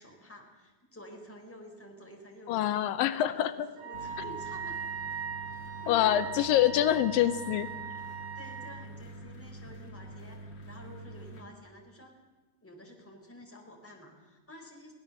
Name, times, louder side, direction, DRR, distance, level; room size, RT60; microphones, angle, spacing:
voice 1, 0.0-4.8 5.8-6.2 8.3-12.2 12.6-14.9, equal, 5° left, 2 dB, 3.5 m, -50 dB
voice 2, 2.5-3.7 5.9-7.7, left 12 dB, 85° left, 13 dB, 2.6 m, -26 dB
Wind instrument woodwind instrument, 3.8-8.7, right 7 dB, 85° right, 9.4 m, -39 dB
sound 1, 3.9-11.4, right 1 dB, 35° left, 2.2 m, -46 dB
24.0 x 16.5 x 7.0 m, 1.3 s
omnidirectional pair, 3.9 m